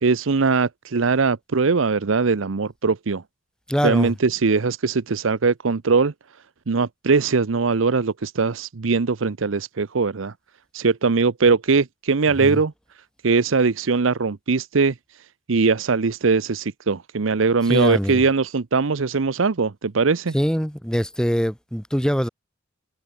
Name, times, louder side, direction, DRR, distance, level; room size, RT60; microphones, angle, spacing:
voice 1, 0.0-3.2 3.8-6.1 6.7-10.3 10.7-12.7 13.2-14.9 15.5-20.3, right 4 dB, 80° right, 0.7 m, -21 dB
voice 2, 3.7-4.1 12.4-12.6 17.7-18.2 20.3-22.3, equal, 5° left, 5.9 m, -23 dB
head